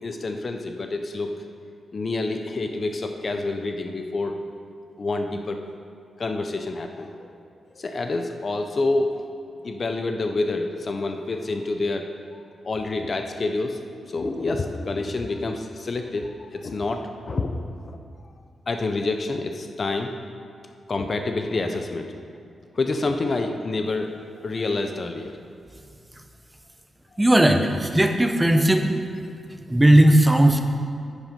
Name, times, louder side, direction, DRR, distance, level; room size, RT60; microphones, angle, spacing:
voice 1, 0.0-1.3 1.9-4.4 5.0-5.6 6.2-7.3 7.8-9.3 9.6-13.8 14.1-18.0 18.7-20.1 20.9-22.2 22.7-24.1 24.4-25.4, left 3 dB, 40° left, 5 dB, 0.5 m, -28 dB
voice 2, 27.2-28.9 29.7-30.6, right 1 dB, 10° right, 5 dB, 0.6 m, -17 dB
9.4 x 6.1 x 5.2 m, 2.4 s
wide cardioid pair, 135°, 0 cm